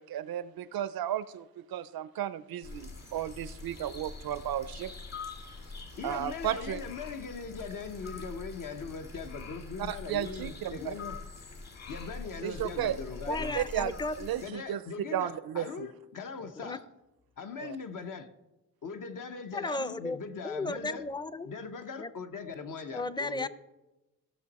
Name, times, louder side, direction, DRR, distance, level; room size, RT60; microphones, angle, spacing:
voice 1, 0.0-4.9 6.0-6.8 9.8-10.9 12.4-13.0 13.6-14.8 15.1-15.9 17.6-17.8, right 11 dB, 85° right, 0.6 m, -34 dB
sound 1, 2.6-14.5, left 3 dB, 45° left, 2.3 m, -44 dB
voice 2, 6.0-11.2 11.9-13.6 14.4-16.8 17.4-18.3 18.8-21.0 21.4-23.5, left 5 dB, 65° left, 1.0 m, -40 dB
voice 3, 13.3-14.4 16.6-16.8 19.5-20.2 20.4-21.5 22.0-22.1 22.9-23.5, left 2 dB, 15° left, 0.5 m, -34 dB
16.5 x 6.1 x 4.2 m
cardioid pair, 75°, 35 cm